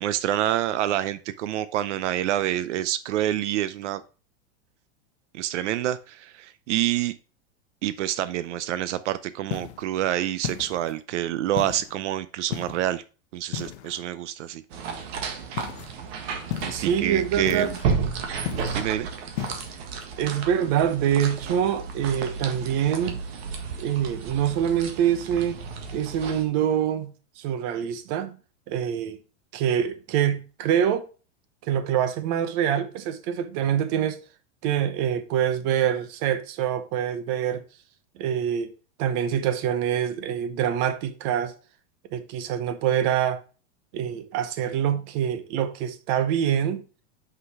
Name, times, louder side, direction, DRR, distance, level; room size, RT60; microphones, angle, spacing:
voice 1, 0.0-4.0 5.3-7.1 7.8-13.0 13.3-14.6 16.6-17.8 18.7-19.1, right 12 dB, 85° right, 0.7 m, -27 dB
sound 1, 9.5-9.9 10.4-11.0 11.6-11.9 12.5-12.9 13.5-14.0 15.6-15.9 16.5-16.9 17.5-17.9 18.4-18.9 19.4-19.7, left 11 dB, 65° left, 0.9 m, -34 dB
sound 2, 14.7-26.4, right 5 dB, 60° right, 1.7 m, -33 dB
voice 2, 16.7-17.7 20.2-23.2 23.8-25.6 25.9-28.3 28.7-29.2 29.5-31.1 31.6-34.2 34.6-37.6 38.2-38.7 39.0-41.5 42.1-43.4 43.9-46.8, right 9 dB, 40° right, 1.0 m, -25 dB
6.1 x 5.7 x 4.7 m
supercardioid pair, 160°, 35 cm